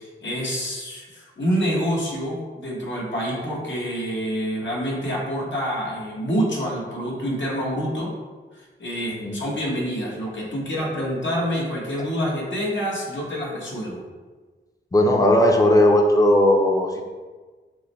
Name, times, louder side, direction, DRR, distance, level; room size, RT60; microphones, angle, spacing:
voice 1, 0.0-8.1 8.5-14.0, equal, 70° left, -4 dB, 1.2 m, -27 dB
voice 2, 14.9-17.0, left 1 dB, 15° left, 1 dB, 0.6 m, -17 dB
6.0 x 2.2 x 3.2 m, 1.3 s
wide cardioid pair, 70°, 20 cm